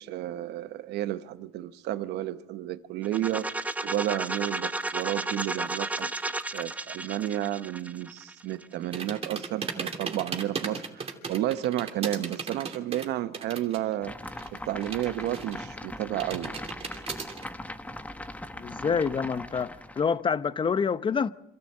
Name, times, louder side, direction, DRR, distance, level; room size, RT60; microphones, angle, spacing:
voice 1, 0.0-14.1 14.5-16.5, right 13 dB, 80° right, 0.9 m, -32 dB
sound 1, 3.0-8.8, right 2 dB, 10° right, 0.8 m, -33 dB
sound 2, 8.9-13.9 14.2-15.8 16.2-17.4, right 5 dB, 35° right, 2.9 m, -36 dB
sound 3, 14.0-20.2, left 1 dB, 10° left, 1.3 m, -40 dB
voice 2, 18.6-21.3, left 6 dB, 30° left, 0.7 m, -27 dB
26.0 x 14.0 x 7.7 m
cardioid pair, 110°, 17 cm